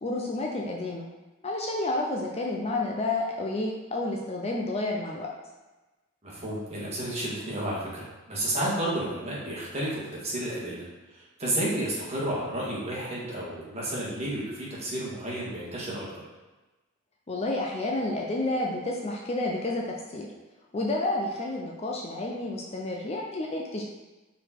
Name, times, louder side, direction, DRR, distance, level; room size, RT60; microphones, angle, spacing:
voice 1, 0.0-1.1 1.4-5.3 17.3-20.3 20.7-23.8, left 2 dB, 30° left, -1 dB, 0.6 m, -30 dB
voice 2, 6.2-10.9 11.1-16.1, right 1 dB, 30° right, -6 dB, 1.8 m, -31 dB
5.0 x 4.1 x 4.5 m, 1.1 s
head